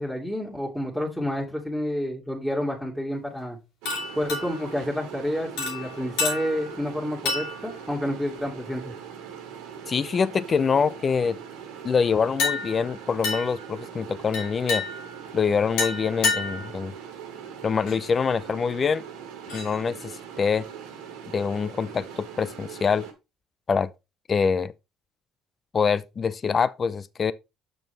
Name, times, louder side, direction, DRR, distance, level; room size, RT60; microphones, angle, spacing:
voice 1, 0.0-3.6 4.2-8.9, left 1 dB, ahead, 2.4 m, -29 dB
sound 1, 3.8-23.1, right 8 dB, 85° right, 1.8 m, -41 dB
sound 2, 3.9-4.7 5.6-6.8 7.3-7.8 8.3-8.6 12.4-12.9 13.2-13.7 14.3-15.2 15.8-16.7 17.9-18.0 19.5-19.8, left 3 dB, 80° left, 3.1 m, -29 dB
voice 2, 9.9-11.4 11.8-14.8 15.3-16.9 17.6-19.0 19.5-20.7 21.3-23.1 23.7-23.9 24.3-24.7 25.7-27.3, left 6 dB, 40° left, 0.6 m, -25 dB
6.9 x 6.1 x 3.4 m
supercardioid pair, 75°, 0 cm